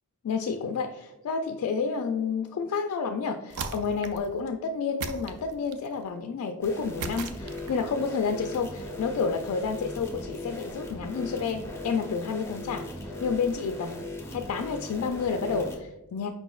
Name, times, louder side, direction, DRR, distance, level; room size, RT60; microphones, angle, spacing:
voice 1, 0.2-14.0 14.3-16.3, left 5 dB, 80° left, 5 dB, 0.3 m, -30 dB
sound 1, 3.5-4.3 5.0-5.9 7.0-7.9, right 5 dB, 80° right, 0.4 m, -37 dB
sound 2, 6.6-15.8, left 1 dB, 10° left, 0.6 m, -39 dB
4.9 x 4.0 x 2.3 m, 1.0 s
head